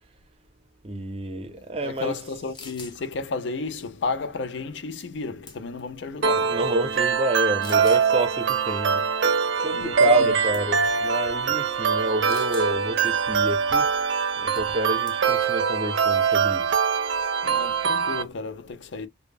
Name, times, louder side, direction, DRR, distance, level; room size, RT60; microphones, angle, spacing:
voice 1, 0.8-2.1 6.4-13.9 14.4-16.8 17.2-17.3, right 1 dB, 35° right, 0.5 m, -29 dB
voice 2, 1.8-6.7 9.7-10.4 10.6-10.7 17.4-19.1, left 3 dB, 80° left, 0.5 m, -32 dB
Gun racking back, 2.2-2.3 2.5-3.0 5.0-5.2 5.5-5.9 6.6-6.7 7.6-8.1 10.0-10.3 10.5-10.8 12.3-12.7 14.6-14.8 15.1-15.4, left 5 dB, 25° left, 0.5 m, -43 dB
sound 1, 6.2-18.2, right 6 dB, 85° right, 0.5 m, -23 dB
2.1 x 2.0 x 3.3 m
head